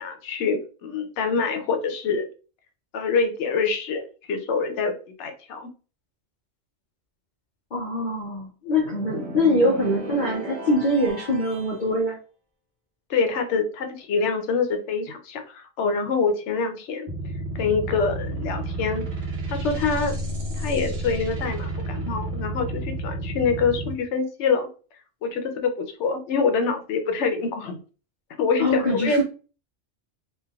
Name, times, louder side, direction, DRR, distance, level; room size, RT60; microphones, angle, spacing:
voice 1, 0.0-2.2 2.9-5.7 13.1-17.1 17.5-19.0 19.5-20.2 20.5-24.7 25.2-27.8 28.4-29.2, left 5 dB, 90° left, 6 dB, 0.9 m, -25 dB
voice 2, 7.7-12.2 28.6-29.2, left 1 dB, 50° left, -2 dB, 0.7 m, -23 dB
sound 1, 8.8-11.8, right 2 dB, 10° left, 0.6 m, -36 dB
sound 2, 17.1-23.9, right 1 dB, 50° right, 0.9 m, -30 dB
3.2 x 2.6 x 2.3 m, 0.36 s
omnidirectional pair, 1.2 m